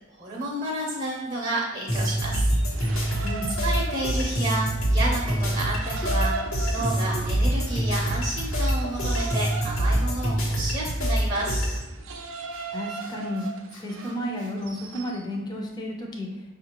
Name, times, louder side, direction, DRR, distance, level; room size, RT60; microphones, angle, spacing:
voice 1, 0.1-2.5 3.6-6.3 6.7-11.6, right 2 dB, 35° right, -4 dB, 0.7 m, -30 dB
sound 1, 1.9-11.8, right 1 dB, 90° left, 1.0 m, -25 dB
sound 2, 2.0-4.6 5.0-15.2, right 4 dB, 75° right, 0.5 m, -38 dB
sound 3, 6.0-7.4 8.0-8.6 8.9-9.0 9.9-10.4 10.6-10.8 12.5-12.6 13.0-14.5, equal, 70° left, 0.7 m, -43 dB
voice 2, 12.7-13.5 13.8-16.3, left 1 dB, 20° left, 0 dB, 0.5 m, -32 dB
5.8 x 2.5 x 2.9 m, 1.1 s
head